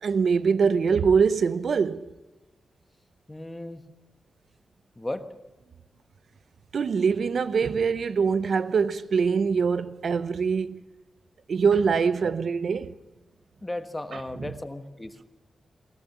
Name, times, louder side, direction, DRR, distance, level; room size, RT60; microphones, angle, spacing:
voice 1, 0.0-2.1 6.7-10.8 11.5-12.9 14.1-14.2, right 5 dB, 65° right, 0.7 m, -23 dB
voice 2, 3.3-3.8 5.0-5.3 13.6-15.2, left 1 dB, 15° left, 1.3 m, -35 dB
21.0 x 17.5 x 7.2 m
wide cardioid pair, 120°, 0 cm